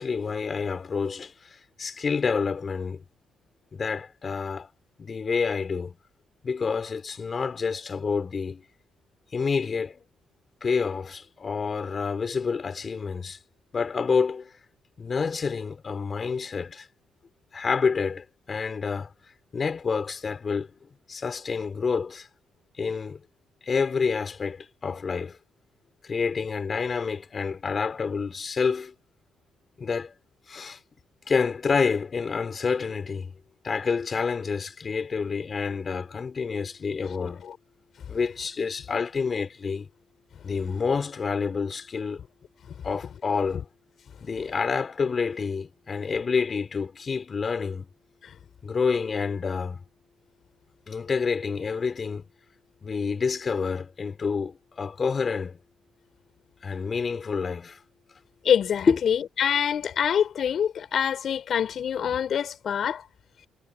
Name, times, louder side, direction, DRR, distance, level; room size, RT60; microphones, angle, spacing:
voice 1, 0.0-3.0 3.7-4.7 5.0-6.0 6.4-8.6 9.3-10.0 10.6-13.4 13.7-14.5 15.0-16.9 17.5-19.1 19.5-20.7 21.1-22.3 22.8-23.2 23.6-25.4 26.0-28.9 29.8-30.1 30.5-30.8 31.3-33.3 33.6-37.4 38.1-39.9 40.4-42.2 42.8-43.6 44.2-47.9 48.6-49.8 50.9-52.3 52.8-55.6 56.6-57.8 58.9-59.0, left 5 dB, 40° left, 5.2 m, -28 dB
voice 2, 58.4-63.0, left 8 dB, 60° left, 6.5 m, -25 dB
cardioid pair, 90°, 0 cm